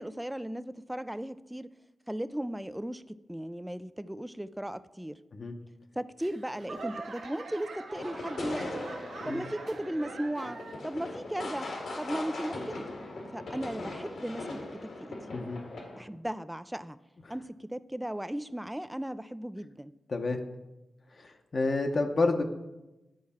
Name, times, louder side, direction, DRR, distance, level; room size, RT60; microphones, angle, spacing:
voice 1, 0.0-1.7 2.1-5.2 6.0-8.9 9.2-11.7 12.0-12.8 13.3-14.4 14.7-15.2 16.0-17.0 17.3-19.9, right 1 dB, 5° right, 14 dB, 0.3 m, -36 dB
Laughter / Clapping / Crowd, 6.2-11.0 11.3-11.8 12.4-12.5, right 3 dB, 90° right, 0.9 m, -43 dB
sound 1, 7.9-16.0, left 2 dB, 85° left, 1.7 m, -40 dB
voice 2, 15.3-15.6 17.3-17.4 20.1-20.4 21.2-22.4, left 3 dB, 50° left, 4 dB, 0.8 m, -29 dB
10.5 x 4.6 x 4.2 m, 1.0 s
cardioid pair, 65°, 0 cm